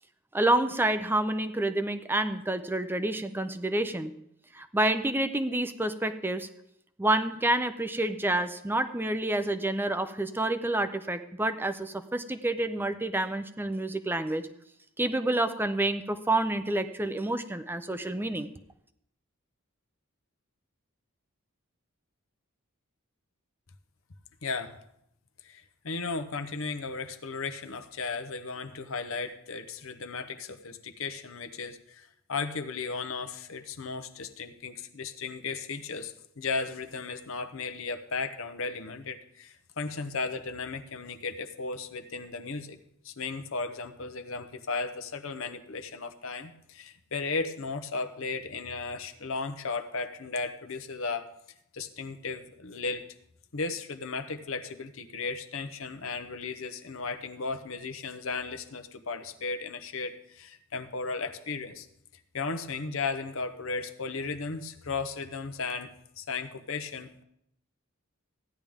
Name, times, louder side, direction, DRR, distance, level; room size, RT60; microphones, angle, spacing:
voice 1, 0.3-4.1 4.5-6.5 7.0-14.5 15.0-18.5, right 1 dB, 10° right, 9 dB, 0.6 m, -28 dB
voice 2, 24.4-24.8 25.4-42.8 43.0-51.3 51.7-53.0 53.5-61.9 62.3-67.2, left 4 dB, 70° left, 8 dB, 0.9 m, -35 dB
15.5 x 10.5 x 3.6 m, 0.75 s
head